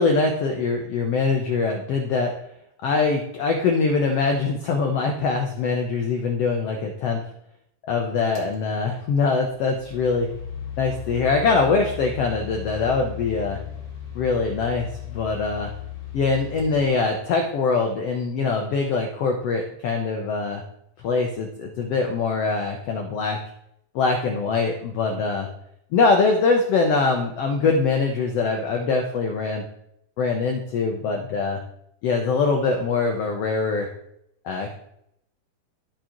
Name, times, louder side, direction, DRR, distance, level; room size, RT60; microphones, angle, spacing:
voice 1, 0.0-2.3 2.8-7.2 7.9-10.3 10.8-13.6 14.1-15.7 16.1-20.6 21.0-23.4 23.9-25.5 25.9-29.6 30.2-31.6 32.0-33.9 34.4-34.8, left 4 dB, 75° left, 2 dB, 1.4 m, -23 dB
sound 1, 8.3-8.5 9.4-17.5, left 9 dB, 40° left, 0.5 m, -36 dB
13.5 x 5.0 x 3.0 m, 0.76 s
omnidirectional pair, 3.7 m